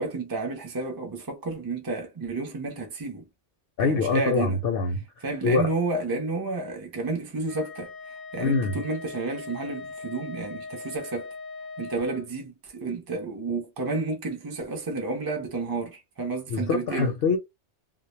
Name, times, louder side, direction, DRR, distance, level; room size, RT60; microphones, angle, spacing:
voice 1, 0.0-3.3 3.8-4.6 5.2-11.3 11.8-17.1, right 3 dB, 25° right, 0.5 m, -31 dB
voice 2, 3.8-5.0 5.4-5.7 8.4-8.7 16.5-17.4, left 4 dB, 65° left, 0.7 m, -24 dB
Wind instrument woodwind instrument, 7.5-12.3, left 4 dB, 25° left, 0.5 m, -40 dB
2.2 x 2.0 x 3.0 m
omnidirectional pair, 1.2 m